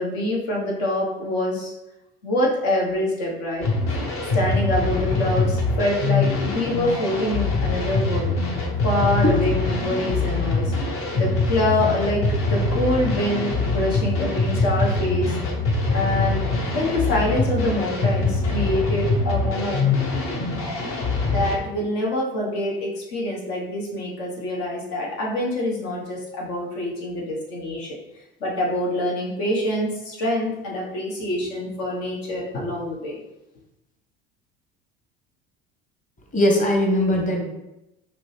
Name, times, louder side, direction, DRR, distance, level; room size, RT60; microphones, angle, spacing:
voice 1, 0.0-1.7 2.2-3.7 4.3-8.3 8.8-10.7 11.1-15.4 15.9-16.4 16.7-19.9 21.2-28.0 28.4-33.2, left 1 dB, 70° left, -2 dB, 1.4 m, -25 dB
sound 1, 3.6-21.5, left 3 dB, 45° left, 1.1 m, -23 dB
voice 2, 36.3-37.4, left 1 dB, 25° left, 1 dB, 1.3 m, -20 dB
5.0 x 3.0 x 3.4 m, 0.92 s
hypercardioid pair, 70°, 30 cm